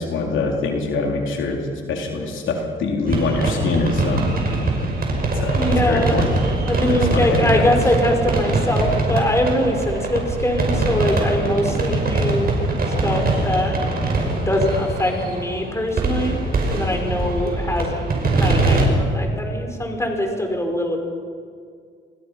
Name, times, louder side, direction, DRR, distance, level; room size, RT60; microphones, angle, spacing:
voice 1, 0.0-1.6 1.9-4.3 5.3-6.3 6.9-7.8, left 3 dB, 75° left, 1 dB, 3.8 m, -24 dB
sound 1, 3.1-18.8, right 2 dB, 50° right, 6.0 m, -22 dB
voice 2, 5.5-6.2 6.7-12.6 13.0-13.8 14.5-16.4 16.7-18.1 18.3-21.0, left 1 dB, 15° left, 3 dB, 4.8 m, -22 dB
28.0 x 21.5 x 5.8 m, 2.1 s
cardioid pair, 90°, 20 cm